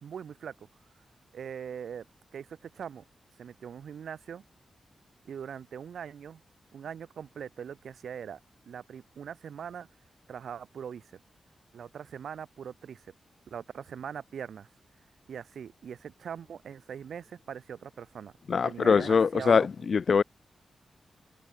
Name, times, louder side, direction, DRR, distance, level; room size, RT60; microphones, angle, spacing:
voice 1, 0.0-0.5 1.3-2.0 2.3-3.0 3.4-4.4 5.2-6.4 6.7-8.4 8.7-9.9 10.3-11.1 11.7-13.0 13.5-14.7 15.3-18.3 18.6-19.7, right 7 dB, 85° right, 1.4 m, -41 dB
voice 2, 18.5-20.2, left 5 dB, 65° left, 0.6 m, -23 dB
cardioid pair, 65°, 0 cm